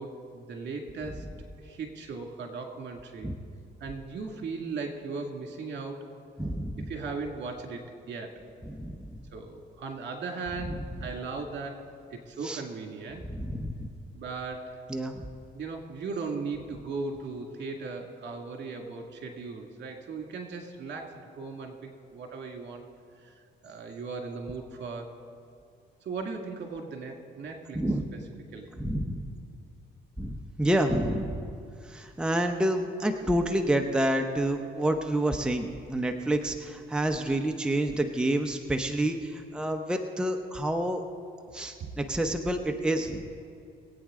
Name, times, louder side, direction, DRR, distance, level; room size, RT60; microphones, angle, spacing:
voice 1, 0.0-1.3 1.6-3.3 3.8-6.1 6.9-8.4 9.3-11.8 12.1-13.2 14.1-14.8 15.5-21.8 22.1-22.8 23.2-23.3 23.6-25.1 26.0-27.8 28.1-28.2 28.5-28.7 41.8-41.9, right 4 dB, 60° right, 3 dB, 2.1 m, -37 dB
voice 2, 6.4-6.9 8.7-9.2 12.4-12.6 13.2-13.9 14.9-15.2 27.7-28.0 28.8-29.3 30.2-31.5 31.8-41.0 41.5-43.3, right 1 dB, 5° right, 4 dB, 0.8 m, -28 dB
22.0 x 8.6 x 3.7 m, 2.5 s
cardioid pair, 90°, 20 cm